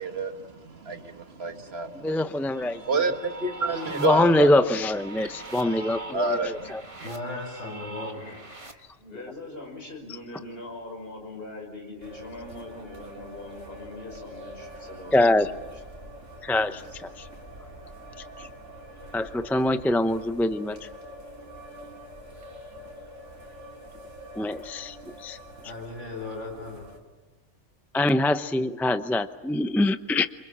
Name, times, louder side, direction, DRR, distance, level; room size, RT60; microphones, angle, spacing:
voice 1, 0.0-2.2 2.7-4.5 5.2-5.3 6.1-6.7 7.0-7.1, right 2 dB, 55° right, 1.7 m, -29 dB
voice 2, 1.9-2.8 3.9-6.8 15.1-15.5 16.4-17.3 18.4-18.5 19.1-20.9 24.4-25.4 27.9-30.3, left 1 dB, ahead, 0.6 m, -24 dB
sound 1, 2.5-8.7, right 2 dB, 25° right, 1.8 m, -42 dB
voice 3, 7.0-8.4 25.6-26.9, left 2 dB, 85° left, 7.2 m, -36 dB
voice 4, 8.0-15.6 16.0-16.1 16.6-17.0, left 2 dB, 50° left, 6.0 m, -42 dB
sound 2, 12.0-27.0, equal, 75° right, 3.6 m, -45 dB
28.0 x 26.5 x 7.4 m
omnidirectional pair, 1.3 m